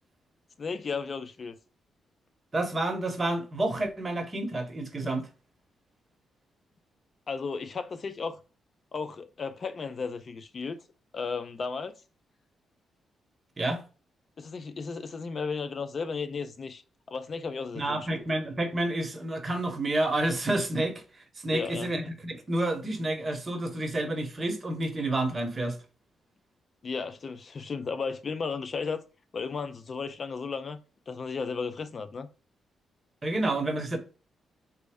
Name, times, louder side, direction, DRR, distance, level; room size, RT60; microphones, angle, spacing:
voice 1, 0.6-1.5 7.3-8.4 8.9-10.8 11.1-11.9 14.4-16.8 17.1-18.1 21.5-21.9 26.8-29.0 29.3-30.8 31.1-32.3, left 5 dB, 45° left, 0.4 m, -34 dB
voice 2, 2.5-5.3 13.6-13.8 17.7-25.8 33.2-34.0, right 1 dB, 30° right, 0.9 m, -29 dB
4.2 x 2.0 x 3.4 m
cardioid pair, 95°, 0 cm